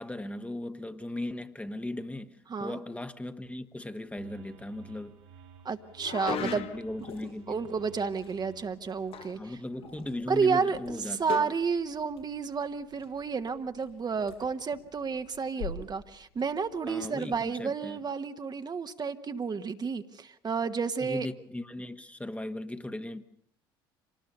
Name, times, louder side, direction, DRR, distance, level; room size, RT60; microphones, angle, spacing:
voice 1, 0.0-5.2 6.3-7.6 9.4-11.5 16.9-18.0 21.0-23.2, left 1 dB, 10° left, 1.3 m, -38 dB
sound 1, 4.2-9.3, right 7 dB, 80° right, 3.8 m, -54 dB
voice 2, 5.6-6.7 7.5-9.6 10.3-21.3, right 5 dB, 35° right, 1.3 m, -31 dB
sound 2, 6.0-7.0 9.1-9.5 9.7-9.8 11.3-11.6, left 8 dB, 50° left, 1.2 m, -36 dB
Liquid, 6.3-17.4, left 6 dB, 90° left, 6.9 m, -49 dB
25.5 x 19.5 x 6.7 m
hypercardioid pair, 60°, 13 cm